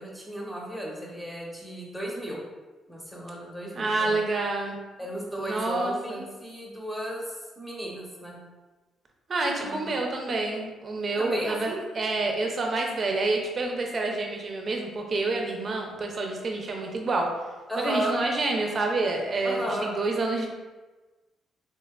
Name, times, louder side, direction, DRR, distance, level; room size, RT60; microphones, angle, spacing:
voice 1, 0.0-2.4 2.9-4.2 5.0-7.2 7.6-8.4 9.6-10.0 11.2-11.8 17.7-18.1 19.4-19.9, equal, 5° left, -3 dB, 0.9 m, -34 dB
voice 2, 3.7-4.8 5.4-6.2 9.3-17.3 17.8-20.5, right 3 dB, 45° right, 1 dB, 0.6 m, -28 dB
3.5 x 2.8 x 2.3 m, 1.2 s
cardioid pair, 90°, 0 cm